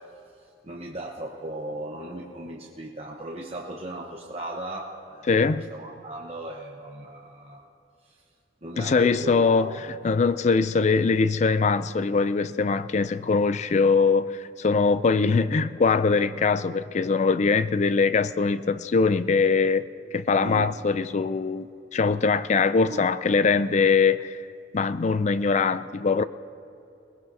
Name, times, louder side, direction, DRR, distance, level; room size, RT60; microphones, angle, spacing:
voice 1, 0.6-5.3 5.7-7.7 8.1-8.2 8.6-9.8 20.4-20.6 22.9-23.1, right 1 dB, 35° right, -2 dB, 1.0 m, -37 dB
voice 2, 5.3-5.7 8.8-19.9 20.1-24.4 24.7-26.2, left 4 dB, 40° left, 14 dB, 0.4 m, -22 dB
22.5 x 19.5 x 2.7 m, 2.7 s
head